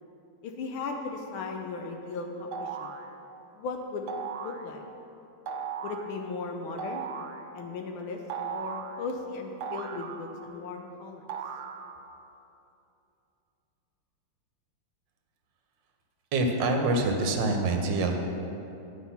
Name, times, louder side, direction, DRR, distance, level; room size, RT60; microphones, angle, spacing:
voice 1, 0.4-2.9 3.6-4.1 4.4-4.8 5.8-7.0 7.5-8.2 8.5-11.2, left 4 dB, 75° left, 3 dB, 1.5 m, -36 dB
sound 1, 2.5-3.1 4.1-4.6 5.5-6.1 6.8-7.4 8.3-9.0 9.6-10.6 11.3-12.1, right 6 dB, 85° right, 0.9 m, -37 dB
voice 2, 16.3-18.1, right 2 dB, 65° right, 3 dB, 1.4 m, -25 dB
10.0 x 5.9 x 5.7 m, 2.8 s
omnidirectional pair, 2.4 m